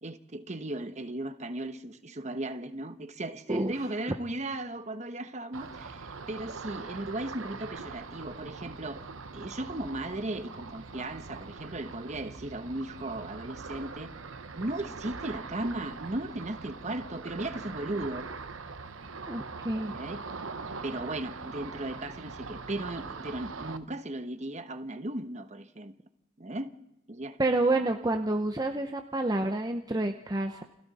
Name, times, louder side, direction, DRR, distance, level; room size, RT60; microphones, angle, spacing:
voice 1, 0.0-9.0 9.3-14.1 14.5-18.3 19.8-20.2 20.8-25.9 26.4-26.7 27.1-27.4 27.7-27.8, right 1 dB, 35° right, 1.1 m, -36 dB
Ocean, 5.5-23.8, right 4 dB, 85° right, 1.1 m, -42 dB
voice 2, 19.3-20.0 27.4-30.6, right 2 dB, 20° right, 0.8 m, -28 dB
29.5 x 24.5 x 4.2 m
head